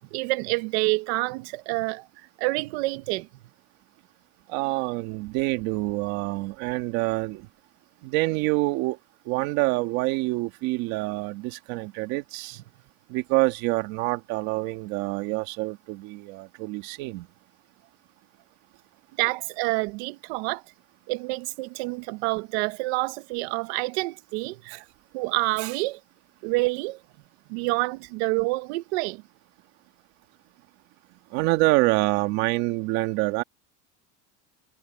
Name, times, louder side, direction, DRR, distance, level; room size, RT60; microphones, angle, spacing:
voice 1, 0.1-2.1 2.4-3.3 19.2-20.6 21.1-24.8 25.1-26.0 26.4-27.0 27.5-29.2, right 23 dB, 70° right, 1.2 m, -27 dB
voice 2, 4.5-7.5 8.0-9.0 9.3-12.6 13.1-17.3 31.3-33.4, right 21 dB, 55° right, 1.8 m, -26 dB
cardioid pair, 170°, 33 cm